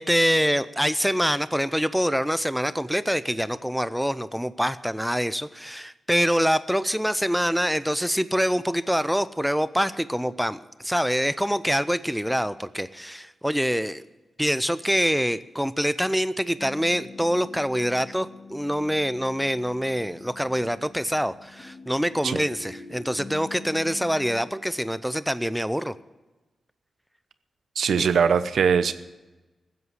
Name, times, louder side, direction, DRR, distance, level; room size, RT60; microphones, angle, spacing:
voice 1, 0.0-14.0 14.4-25.9 28.0-28.1, equal, ahead, 14 dB, 0.6 m, -25 dB
sound 1, 16.6-24.4, left 4 dB, 45° left, 3.4 m, -44 dB
voice 2, 27.8-28.9, right 6 dB, 85° right, 12 dB, 0.8 m, -21 dB
15.0 x 8.1 x 9.7 m, 1.1 s
cardioid pair, 90°, 0 cm